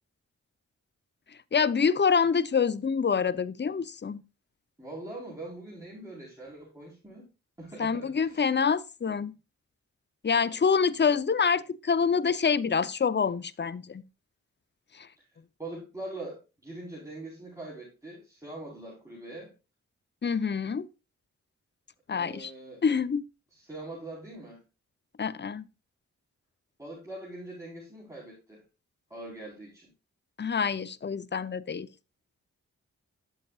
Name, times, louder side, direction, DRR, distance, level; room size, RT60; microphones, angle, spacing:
voice 1, 1.5-4.2 7.8-9.3 10.2-14.0 14.9-15.1 20.2-20.9 22.1-22.5 22.8-23.2 25.2-25.6 30.4-31.9, left 6 dB, 35° left, 0.7 m, -26 dB
voice 2, 4.8-7.3 7.6-8.5 15.6-19.5 22.1-22.8 23.5-24.6 26.8-28.6 29.1-29.9, right 2 dB, 10° right, 4.5 m, -42 dB
11.0 x 7.9 x 2.4 m
cardioid pair, 40°, 33 cm